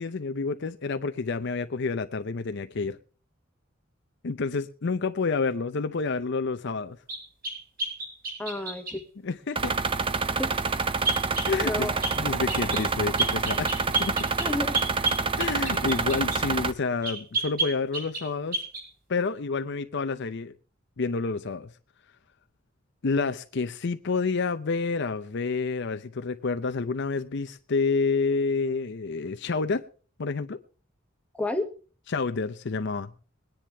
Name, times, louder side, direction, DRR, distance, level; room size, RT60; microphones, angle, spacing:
voice 1, 0.0-3.0 4.2-7.0 9.2-9.7 11.4-14.2 15.4-18.6 19.1-20.5 21.0-21.7 23.0-29.8 30.2-30.6 32.1-33.1, left 4 dB, 60° left, 0.6 m, -29 dB
sound 1, 7.1-9.0 11.0-11.5 12.0-12.2 12.5-12.9 13.2-16.4 17.0-18.3 18.5-18.8, right 3 dB, 45° right, 6.8 m, -30 dB
voice 2, 8.4-9.0 10.4-10.5 11.6-11.9 14.4-15.1 31.3-31.7, left 1 dB, 5° left, 1.3 m, -31 dB
sound 2, 9.6-16.7, right 4 dB, 25° right, 0.6 m, -27 dB
22.0 x 10.0 x 3.4 m
head